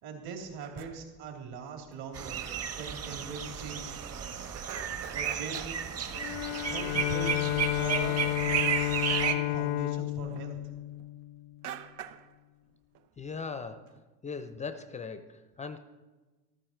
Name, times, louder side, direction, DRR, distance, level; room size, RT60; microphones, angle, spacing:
voice 1, 0.0-2.4 2.8-4.0 5.0-5.8 6.2-10.6, right 5 dB, 50° right, 2 dB, 3.4 m, -41 dB
sound 1, 0.6-1.2 1.9-2.0 2.4-2.6 2.9-3.0 3.3-4.2 4.5-6.8 7.5-7.8 8.2-8.7 9.1-11.1 11.6-12.4 12.7-13.1 13.3-13.4 13.8-14.5, right 11 dB, 70° right, 1.0 m, -47 dB
sound 2, 2.1-9.3, right 7 dB, 30° right, 1.4 m, -33 dB
Bowed string instrument, 6.1-11.7, left 19 dB, 65° left, 0.5 m, -31 dB
voice 2, 13.2-13.9 14.2-15.8, left 5 dB, 15° left, 11 dB, 0.6 m, -39 dB
14.0 x 13.5 x 4.5 m, 1.2 s
hypercardioid pair, 105°, 48 cm